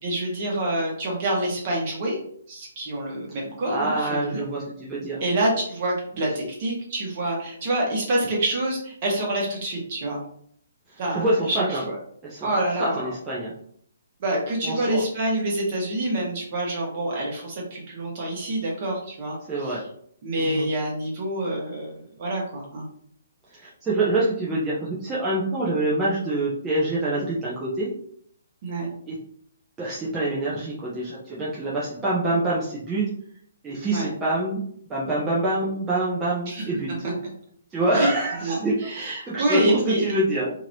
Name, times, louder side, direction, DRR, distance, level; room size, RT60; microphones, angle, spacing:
voice 1, 0.0-2.2 2.5-4.5 5.2-10.2 11.0-12.0 12.4-13.0 14.2-19.4 19.6-19.8 20.2-22.8 28.6-28.9 33.9-34.1 36.5-36.6 37.0-37.1 37.9-38.1 38.4-40.0, right 1 dB, 45° right, -2 dB, 1.3 m, -27 dB
voice 2, 3.7-5.2 6.2-6.3 10.9-11.8 12.2-12.5 12.8-13.5 14.6-15.0 19.5-19.8 20.4-20.7 23.5-27.9 29.1-29.2 29.8-33.1 33.6-34.6 34.9-36.9 37.7-40.5, right 2 dB, 15° right, -7 dB, 0.7 m, -26 dB
2.9 x 2.8 x 2.7 m, 0.64 s
hypercardioid pair, 150°, 0 cm